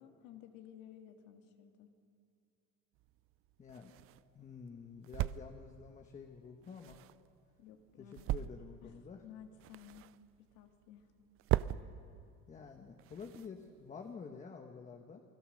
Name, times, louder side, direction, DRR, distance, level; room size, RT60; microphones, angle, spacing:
voice 1, 0.0-1.9 7.6-8.3 8.8-10.1 10.4-11.1, left 10 dB, 80° left, 4 dB, 2.0 m, -55 dB
sound 1, 2.9-14.1, right 15 dB, 50° right, 0.5 m, -42 dB
voice 2, 3.6-3.9 4.3-7.0 8.0-9.2 11.7-11.9 12.5-15.2, left 5 dB, 25° left, 3 dB, 1.3 m, -49 dB
28.5 x 21.0 x 6.5 m, 2.4 s
cardioid pair, 160°, 29 cm